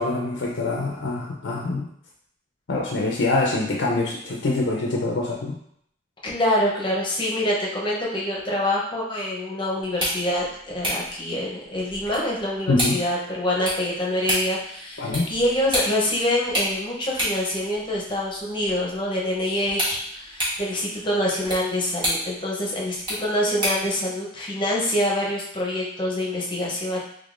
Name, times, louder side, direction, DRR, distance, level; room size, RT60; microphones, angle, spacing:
voice 1, 0.0-1.9 2.7-5.6 12.7-13.0 15.0-15.3, left 2 dB, 70° left, -2 dB, 0.5 m, -25 dB
voice 2, 6.2-10.4 10.7-27.0, left 1 dB, 25° left, -4 dB, 0.7 m, -25 dB
sound 1, 9.8-23.9, equal, 25° right, 1.2 m, -31 dB
3.6 x 3.3 x 2.5 m, 0.69 s
head